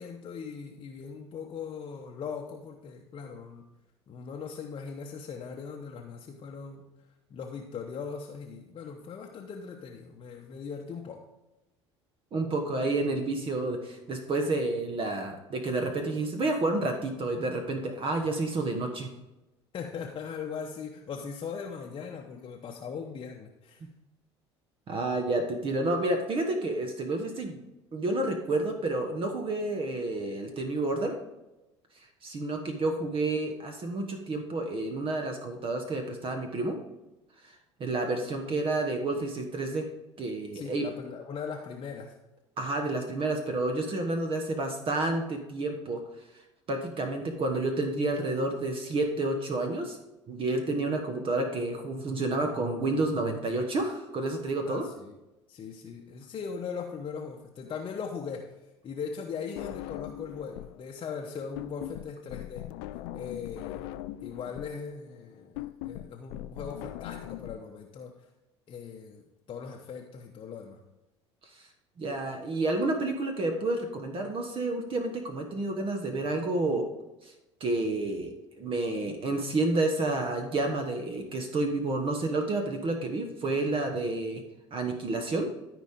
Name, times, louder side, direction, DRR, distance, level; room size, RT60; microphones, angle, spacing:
voice 1, 0.0-3.7 4.1-6.9 7.3-11.2 19.7-23.8 40.5-42.1 54.6-55.1 55.5-58.5 58.8-62.6 63.1-63.9 64.2-68.3 68.7-70.8, left 6 dB, 35° left, 1 dB, 0.9 m, -39 dB
voice 2, 12.3-19.1 23.8-23.9 24.9-27.6 27.9-31.1 32.2-36.8 37.4-37.5 37.8-39.9 40.2-40.9 42.6-46.0 46.7-50.0 50.3-54.9 72.0-76.8 77.2-77.3 77.6-84.4 84.7-85.5, right 2 dB, 35° right, 4 dB, 1.3 m, -30 dB
sound 1, 59.6-60.8 61.1-67.6, left 14 dB, 60° left, 0.4 m, -40 dB
13.5 x 5.0 x 3.6 m, 0.98 s
figure-of-eight pair, 65°, 15 cm